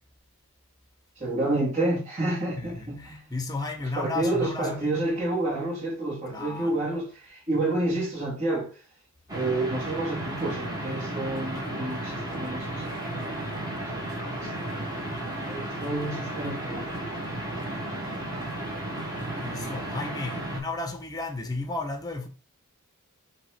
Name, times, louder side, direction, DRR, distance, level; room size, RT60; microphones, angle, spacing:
voice 1, 1.2-3.2 4.0-8.7 9.3-13.3 14.4-14.7 15.4-16.9 17.5-17.6, right 2 dB, 35° right, 2.5 m, -29 dB
voice 2, 2.5-5.2 6.3-6.9 19.4-22.3, left 3 dB, 15° left, 1.1 m, -34 dB
sound 1, 9.3-20.6, right 1 dB, 15° right, 2.2 m, -33 dB
5.8 x 3.2 x 5.1 m
head